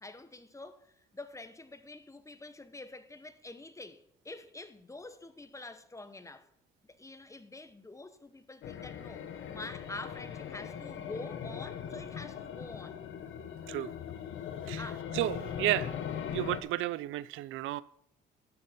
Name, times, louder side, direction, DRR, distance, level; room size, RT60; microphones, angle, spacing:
voice 1, 0.0-6.5 7.0-13.0 14.8-15.1, left 2 dB, 15° left, 0.9 m, -46 dB
sound 1, 8.6-16.6, left 8 dB, 80° left, 1.1 m, -40 dB
voice 2, 15.1-15.9 16.3-17.8, right 16 dB, 85° right, 0.4 m, -32 dB
11.5 x 6.6 x 5.2 m
cardioid pair, 90°, 20 cm